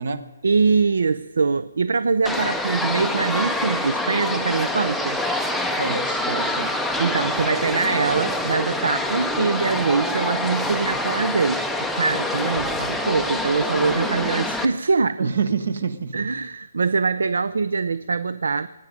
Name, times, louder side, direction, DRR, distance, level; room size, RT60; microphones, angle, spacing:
voice 1, 0.4-5.2 7.0-15.3 16.1-18.7, right 4 dB, 80° right, 15 dB, 0.5 m, -23 dB
sound 1, 2.3-14.7, left 1 dB, ahead, 0.5 m, -26 dB
voice 2, 5.8-6.8 15.2-16.3, right 5 dB, 55° right, 13 dB, 1.0 m, -27 dB
sound 2, 12.5-14.5, right 4 dB, 20° right, 1.1 m, -42 dB
23.0 x 9.7 x 5.2 m, 1.2 s
hypercardioid pair, 175°, 0 cm